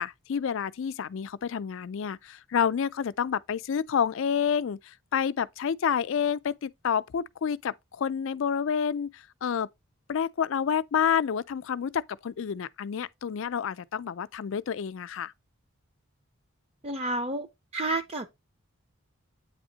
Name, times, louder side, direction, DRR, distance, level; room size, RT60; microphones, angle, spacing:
voice 1, 0.0-9.7 10.1-15.3, left 7 dB, 60° left, 0.4 m, -29 dB
voice 2, 16.8-17.5 17.7-18.3, right 2 dB, 30° right, 0.5 m, -30 dB
8.6 x 3.5 x 3.9 m
head